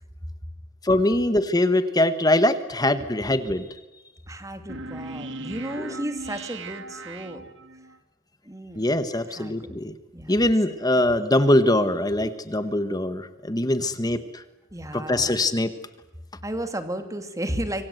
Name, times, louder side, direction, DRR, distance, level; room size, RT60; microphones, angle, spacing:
voice 1, 0.8-3.7 5.8-5.9 8.7-9.9 10.3-14.4 14.9-15.7, left 1 dB, 20° left, 11 dB, 1.4 m, -22 dB
voice 2, 4.3-7.5 8.4-9.0 9.3-9.5 10.1-10.3 14.7-15.4 16.4-17.9, right 1 dB, 15° right, 8 dB, 2.7 m, -33 dB
sound 1, 4.7-8.0, right 2 dB, 65° right, 1.8 m, -38 dB
26.0 x 25.0 x 8.1 m, 1.1 s
head